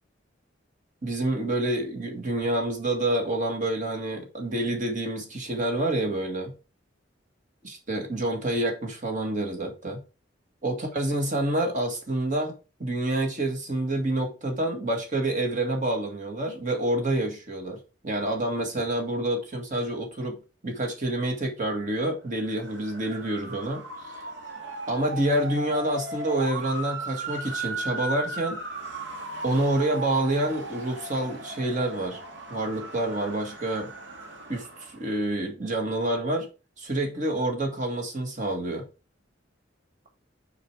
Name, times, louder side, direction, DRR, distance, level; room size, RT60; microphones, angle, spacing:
voice 1, 1.0-6.5 7.9-10.0 10.6-12.5 12.8-17.8 18.0-20.4 20.6-23.8 24.1-24.2 24.9-28.6 29.4-32.2 32.5-33.9 34.5-36.5 36.8-38.9, right 1 dB, 45° right, 2.1 m, -28 dB
Motor vehicle (road) / Siren, 22.4-35.1, right 2 dB, 75° right, 1.9 m, -37 dB
6.7 x 5.0 x 4.8 m
head